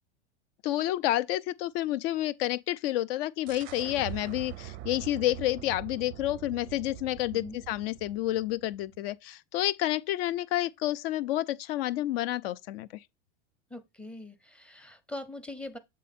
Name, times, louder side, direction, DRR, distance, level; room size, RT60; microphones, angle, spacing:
voice 1, 0.6-12.9, left 14 dB, 60° left, 0.6 m, -29 dB
sound 1, 3.5-9.0, right 14 dB, 35° right, 0.4 m, -43 dB
voice 2, 13.7-15.8, left 2 dB, 5° left, 0.6 m, -42 dB
7.5 x 3.7 x 4.2 m
supercardioid pair, 125°, 34 cm